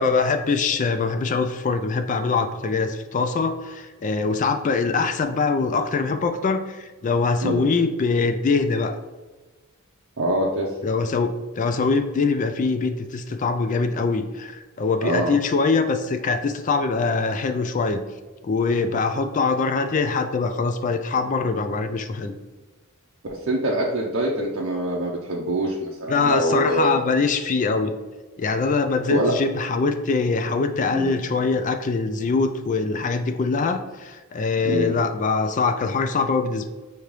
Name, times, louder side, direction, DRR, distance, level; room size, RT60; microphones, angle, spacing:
voice 1, 0.0-9.0 10.8-18.0 18.4-22.4 26.1-27.9 28.4-36.7, left 4 dB, 35° left, 8 dB, 0.3 m, -23 dB
voice 2, 10.2-10.9 15.0-15.4 23.3-27.0 29.1-29.3 30.9-31.2 34.6-35.0, right 1 dB, 55° right, -4 dB, 0.6 m, -24 dB
5.1 x 2.8 x 3.1 m, 1.2 s
head